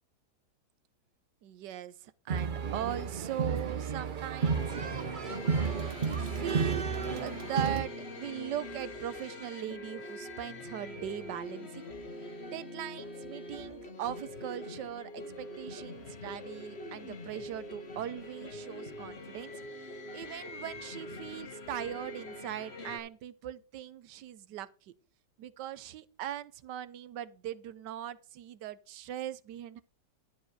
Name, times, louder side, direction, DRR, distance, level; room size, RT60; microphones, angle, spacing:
voice 1, 1.4-4.8 5.5-6.9 7.2-11.9 12.5-19.5 19.8-24.9 25.4-29.8, right 11 dB, 75° right, 1.3 m, -40 dB
sound 1, 2.3-7.8, right 5 dB, 50° right, 0.5 m, -32 dB
sound 2, 4.4-23.0, left 1 dB, 40° left, 1.6 m, -44 dB
12.0 x 5.0 x 6.5 m
omnidirectional pair, 1.9 m